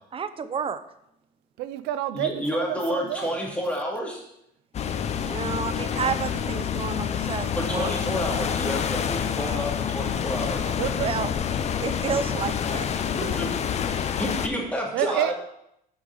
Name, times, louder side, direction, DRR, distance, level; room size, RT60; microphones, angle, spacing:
voice 1, 0.1-0.8 5.3-7.9 11.0-11.3 11.8-12.9, right 6 dB, 35° right, 0.6 m, -30 dB
voice 2, 1.6-3.4 10.8-11.1 13.5-13.6 14.9-15.3, right 12 dB, 90° right, 0.5 m, -29 dB
voice 3, 2.1-4.1 7.5-10.7 13.2-13.5 14.2-15.3, equal, 10° left, 2.4 m, -29 dB
sound 1, 4.7-14.5, left 8 dB, 40° left, 0.6 m, -27 dB
10.5 x 4.9 x 3.9 m
cardioid pair, 110°, 17 cm